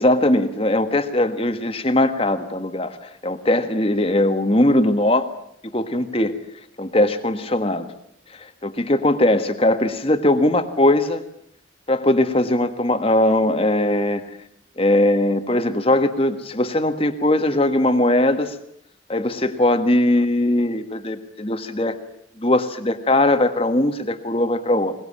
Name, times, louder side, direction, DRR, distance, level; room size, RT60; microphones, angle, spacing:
voice 1, 0.0-3.0 3.2-5.3 5.6-6.4 6.8-7.9 8.4-11.2 11.9-14.2 14.8-18.5 19.1-22.0 22.4-24.9, left 1 dB, 30° left, 9 dB, 1.6 m, -20 dB
22.5 x 20.5 x 8.6 m, 0.71 s
head